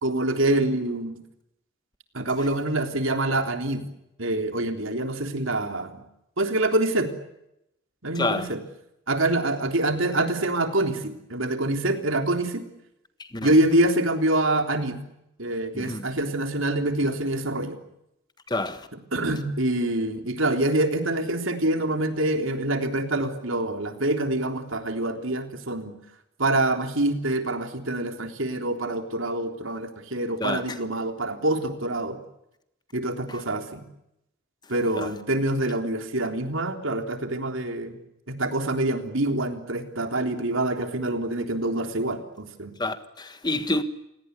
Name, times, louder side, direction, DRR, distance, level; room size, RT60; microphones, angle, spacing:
voice 1, 0.0-1.2 2.1-3.9 4.2-6.0 6.4-7.1 8.0-8.6 9.1-12.6 13.4-15.0 15.4-17.8 18.9-26.0 26.4-32.2 32.9-33.8 34.7-38.0 38.3-42.7, right 1 dB, 75° right, 3.6 m, -26 dB
voice 2, 18.5-18.8 30.4-30.6 42.8-43.8, left 2 dB, 20° left, 1.4 m, -27 dB
29.0 x 18.5 x 9.7 m
head